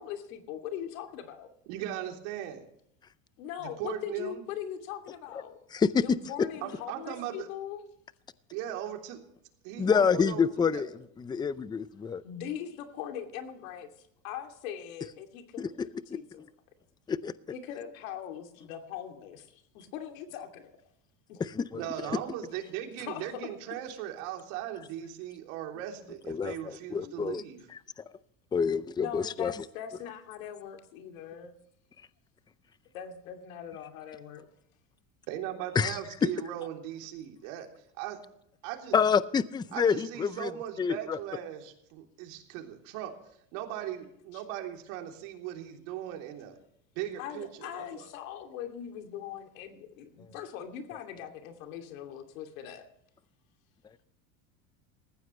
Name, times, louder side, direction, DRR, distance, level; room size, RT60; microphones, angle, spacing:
voice 1, 0.0-1.5 3.4-5.6 5.9-7.8 9.8-10.2 12.2-13.9 14.2-15.6 16.1-16.4 17.5-20.7 21.3-21.4 23.0-23.4 27.0-27.1 29.0-31.6 32.9-34.5 44.3-44.4 47.2-52.9, left 9 dB, 85° left, 5 dB, 2.8 m, -41 dB
voice 2, 1.7-2.6 3.6-4.4 6.6-7.5 8.5-9.2 9.6-10.5 10.7-10.8 21.8-27.6 35.3-37.7 38.0-38.2 38.6-39.0 39.7-43.1 43.5-46.6 46.9-48.1, right 11 dB, 70° right, 3 dB, 3.4 m, -38 dB
voice 3, 5.7-6.0 9.8-10.9 11.2-12.2 15.6-15.7 17.1-17.3 21.4-21.8 26.3-27.4 28.5-29.5 35.8-36.0 38.9-40.5 40.8-41.2, left 6 dB, 10° left, 16 dB, 0.5 m, -27 dB
19.5 x 15.0 x 3.2 m, 0.74 s
supercardioid pair, 130°, 40 cm